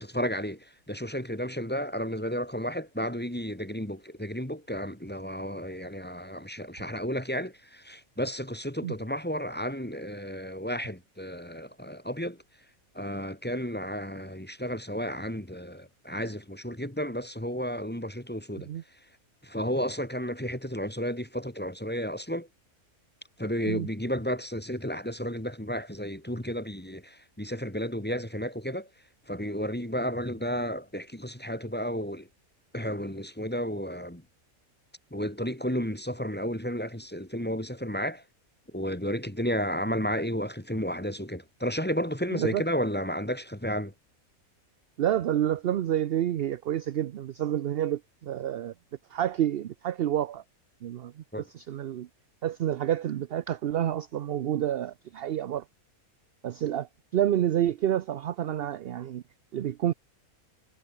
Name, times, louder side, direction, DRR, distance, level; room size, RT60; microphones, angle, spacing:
voice 1, 0.0-12.4 12.9-18.7 19.4-22.5 23.4-28.9 29.3-32.3 32.7-34.2 35.1-38.2 38.7-43.9 51.3-51.4, equal, 5° left, 2.3 m, -32 dB
voice 2, 42.3-42.6 45.0-48.7 49.1-50.4 50.8-52.1 52.4-55.6 56.4-59.2 59.5-59.9, right 11 dB, 60° right, 0.6 m, -29 dB
omnidirectional pair, 1.5 m